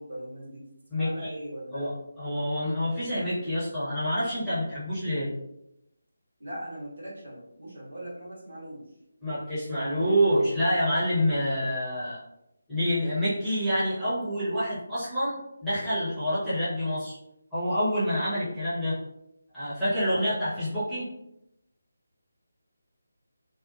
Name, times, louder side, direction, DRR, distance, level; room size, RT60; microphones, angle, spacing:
voice 1, 0.0-1.9 6.4-8.9, equal, 60° right, -5 dB, 1.0 m, -40 dB
voice 2, 0.9-1.3 1.7-1.9 2.2-5.3 9.2-12.2 12.7-17.2 17.5-19.0 19.5-21.1, equal, ahead, -16 dB, 1.0 m, -27 dB
2.6 x 2.2 x 2.6 m, 0.84 s
figure-of-eight pair, 155°, 0 cm